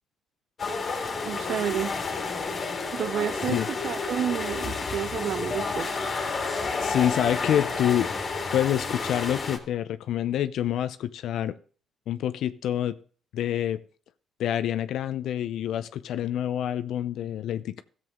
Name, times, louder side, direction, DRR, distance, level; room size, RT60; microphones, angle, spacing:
sound 1, 0.6-9.6, left 4 dB, 45° left, 2.0 m, -30 dB
voice 1, 1.2-1.9 2.9-3.6 3.8-5.9, right 9 dB, 70° right, 0.4 m, -30 dB
voice 2, 6.8-8.1 8.5-11.5 12.1-12.9 13.3-13.8 14.4-17.8, left 11 dB, 80° left, 0.5 m, -27 dB
14.0 x 7.5 x 3.7 m
cardioid pair, 90°, 0 cm